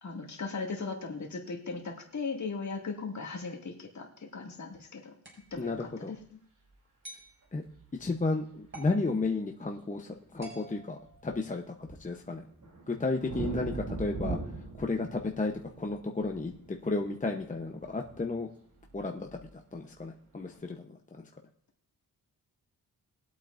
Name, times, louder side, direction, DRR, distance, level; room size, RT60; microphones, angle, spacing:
voice 1, 0.0-5.1 5.5-6.4, left 4 dB, 50° left, 1 dB, 2.3 m, -38 dB
sound 1, 5.2-5.5 7.0-7.3 8.7-9.0 10.4-11.8, right 2 dB, 30° right, 6.2 m, -49 dB
voice 2, 5.6-6.1 7.5-7.6 8.0-12.4 12.9-16.5 16.8-18.5 18.9-19.3 19.7-21.3, left 3 dB, 20° left, 2 dB, 0.9 m, -33 dB
sound 2, 7.7-8.2 8.7-8.8 11.1-11.3 11.9-18.4 18.8-19.5 20.4-20.6, right 3 dB, 60° right, 3.1 m, -41 dB
22.0 x 8.4 x 2.6 m, 0.62 s
wide cardioid pair, 95°, 36 cm